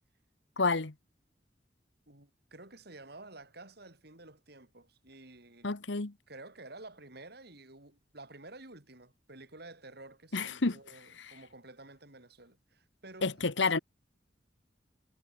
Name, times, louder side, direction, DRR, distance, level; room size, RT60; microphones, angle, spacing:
voice 1, 0.6-0.9 5.6-6.1 10.3-10.8 13.2-13.8, left 3 dB, 80° left, 1.4 m, -29 dB
voice 2, 2.1-5.9 6.3-13.8, right 2 dB, 60° right, 5.1 m, -51 dB
head